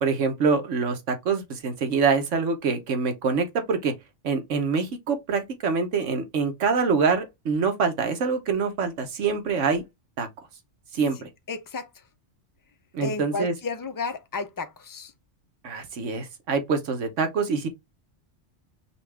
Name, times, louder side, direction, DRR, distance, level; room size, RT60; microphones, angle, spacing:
voice 1, 0.0-3.9 4.2-9.8 10.2-10.3 10.9-11.3 12.9-13.5 15.6-17.7, right 5 dB, 90° right, 1.3 m, -25 dB
voice 2, 11.5-11.9 13.0-15.1, left 4 dB, 30° left, 0.4 m, -32 dB
5.7 x 2.4 x 3.3 m
omnidirectional pair, 1.2 m